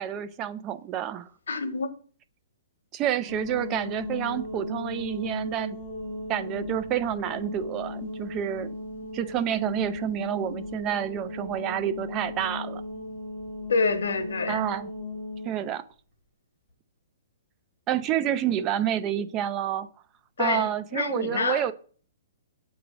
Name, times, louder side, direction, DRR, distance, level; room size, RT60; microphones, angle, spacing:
voice 1, 0.0-1.3 2.9-5.8 6.3-8.7 9.1-12.8 14.5-14.9 15.4-15.8 17.9-19.9 20.4-21.7, right 10 dB, 20° right, 0.3 m, -29 dB
voice 2, 1.5-1.9 13.7-14.6 20.4-21.6, left 4 dB, 85° left, 1.1 m, -27 dB
sound 1, 3.3-15.6, left 2 dB, 5° right, 2.3 m, -36 dB
7.8 x 3.1 x 5.0 m
hypercardioid pair, 175°, 0 cm